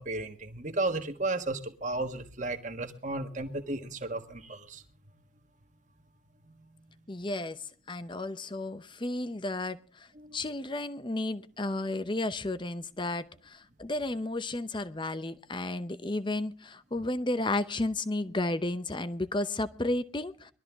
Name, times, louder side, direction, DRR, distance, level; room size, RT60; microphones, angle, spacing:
voice 1, 0.0-4.8 10.2-10.4, right 2 dB, 35° right, 1.5 m, -34 dB
voice 2, 7.1-20.5, left 2 dB, 25° left, 0.7 m, -33 dB
21.5 x 13.0 x 3.5 m
head